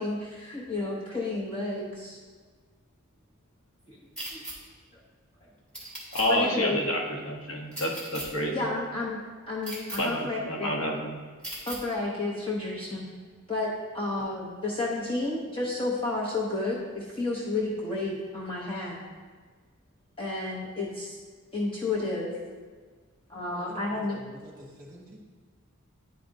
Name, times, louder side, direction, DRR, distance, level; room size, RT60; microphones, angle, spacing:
voice 1, 0.0-2.2 3.9-4.0 4.3-4.4 4.9-5.0 6.3-6.8 8.5-9.2 9.5-10.7 11.7-13.0 13.5-13.7 13.9-19.0 20.2-21.2 21.5-22.3 23.3-24.2, left 2 dB, 25° left, -5 dB, 0.7 m, -31 dB
sound 1, 4.2-4.5 5.7-6.2 7.7-8.3 9.6-10.0 11.4-11.8, right 1 dB, 5° left, 1.8 m, -37 dB
voice 2, 6.1-8.6 10.0-11.1, left 1 dB, 65° left, 0 dB, 0.9 m, -29 dB
voice 3, 23.6-25.2, equal, 20° right, -6 dB, 1.9 m, -48 dB
10.5 x 4.9 x 2.6 m, 1.5 s
head